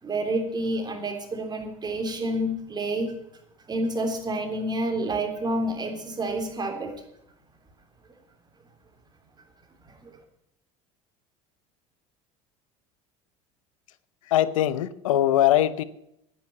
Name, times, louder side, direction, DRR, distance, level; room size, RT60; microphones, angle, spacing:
voice 1, 0.0-3.1 3.7-6.9 9.8-10.1, right 1 dB, 25° right, 3 dB, 3.4 m, -29 dB
voice 2, 14.3-15.8, left 12 dB, 85° left, 16 dB, 0.8 m, -21 dB
10.0 x 9.3 x 8.6 m, 0.79 s
hypercardioid pair, 85°, 17 cm